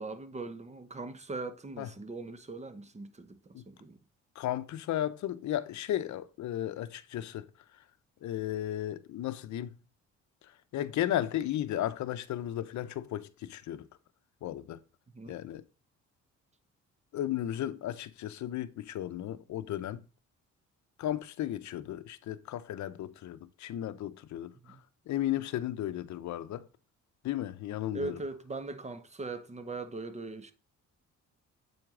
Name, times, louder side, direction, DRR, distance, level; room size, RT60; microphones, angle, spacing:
voice 1, 0.0-4.0 15.1-15.4 24.6-24.8 27.9-30.5, right 3 dB, 20° right, 0.9 m, -40 dB
voice 2, 4.4-7.5 8.2-9.8 10.7-13.8 14.4-14.8 15.3-15.6 17.1-20.0 21.0-24.5 25.1-26.7 27.2-28.2, left 12 dB, 70° left, 0.7 m, -34 dB
7.9 x 4.6 x 3.7 m
cardioid pair, 90°, 30 cm